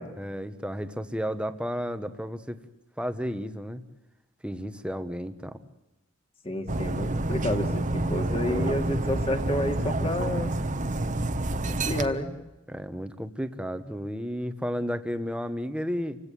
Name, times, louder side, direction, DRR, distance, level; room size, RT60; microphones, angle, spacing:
voice 1, 0.2-2.6 3.0-3.8 4.4-5.6 8.4-8.9 12.7-16.2, equal, 5° right, 9 dB, 1.4 m, -33 dB
voice 2, 6.4-10.5 11.7-12.3, left 1 dB, 25° left, 5 dB, 2.5 m, -30 dB
Dog, 6.7-12.1, right 2 dB, 35° right, 1.4 m, -28 dB
29.0 x 17.0 x 9.4 m, 0.99 s
head